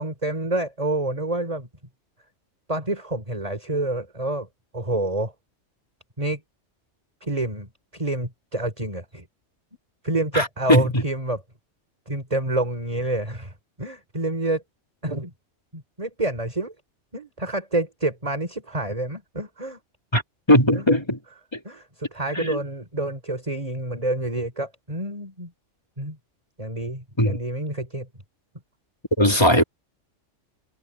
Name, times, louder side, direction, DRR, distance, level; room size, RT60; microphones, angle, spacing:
voice 1, 0.0-1.7 2.7-4.5 4.7-5.3 6.2-6.4 7.2-9.3 10.0-11.4 12.1-14.6 15.0-15.3 15.7-16.7 17.1-19.8 20.7-20.9 21.6-25.5 26.0-26.2 26.6-28.1, right 2 dB, 30° right, 4.4 m, -28 dB
voice 2, 10.3-11.0 20.1-20.2 20.5-21.2 22.4-22.6 27.2-27.4 29.2-29.6, equal, 20° left, 3.1 m, -18 dB
omnidirectional pair, 1.3 m